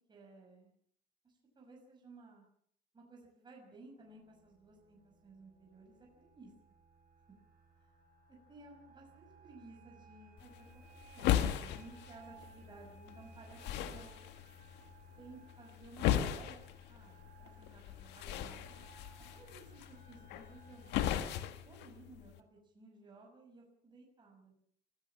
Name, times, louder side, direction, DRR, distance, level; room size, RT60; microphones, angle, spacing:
voice 1, 0.1-0.7 1.2-2.4 2.9-6.0 6.3-6.7 8.3-10.8 11.1-14.1 15.2-18.6 19.3-24.6, right 3 dB, 25° right, 0 dB, 6.1 m, -57 dB
sound 1, 4.0-21.1, right 5 dB, 55° right, 7.9 m, -60 dB
sound 2, 10.4-22.4, left 11 dB, 90° left, 1.8 m, -38 dB
24.0 x 16.0 x 7.3 m, 0.65 s
cardioid pair, 110°, 17 cm